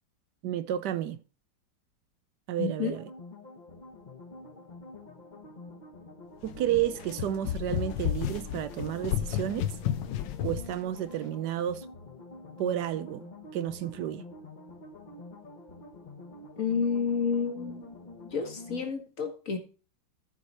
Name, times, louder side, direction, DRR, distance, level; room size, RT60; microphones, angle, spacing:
voice 1, 0.4-1.2 2.5-3.1 6.4-9.7 10.4-11.9 12.6-14.2, right 11 dB, 75° right, 1.2 m, -31 dB
voice 2, 2.6-2.9 16.6-17.9 18.2-19.6, left 6 dB, 50° left, 1.7 m, -30 dB
sound 1, 2.9-18.9, left 2 dB, 30° left, 1.0 m, -47 dB
sound 2, 6.4-10.8, left 12 dB, 85° left, 1.4 m, -32 dB
13.5 x 4.8 x 4.1 m
omnidirectional pair, 1.9 m